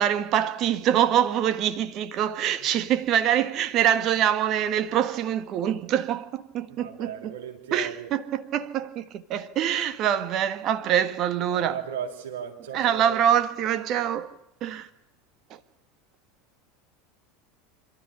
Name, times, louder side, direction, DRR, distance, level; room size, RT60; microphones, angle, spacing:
voice 1, 0.0-7.3 7.7-11.8 12.7-14.3 14.6-14.9, right 10 dB, 40° right, 1.6 m, -25 dB
voice 2, 6.7-8.1 11.5-13.2, right 8 dB, 65° right, 3.6 m, -36 dB
27.0 x 13.5 x 10.0 m
figure-of-eight pair, 80°, 0 cm